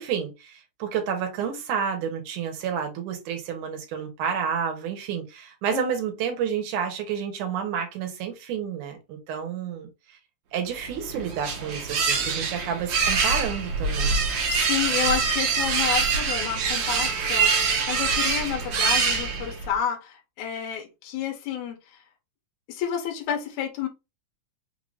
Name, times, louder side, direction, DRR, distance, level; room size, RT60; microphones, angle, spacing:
voice 1, 0.0-9.9 10.5-14.2, right 7 dB, 85° right, 2.6 m, -30 dB
sound 1, 10.8-19.7, right 5 dB, 65° right, 2.3 m, -25 dB
voice 2, 14.5-21.8 22.7-23.9, left 8 dB, 80° left, 2.4 m, -30 dB
5.7 x 2.6 x 3.3 m
omnidirectional pair, 3.5 m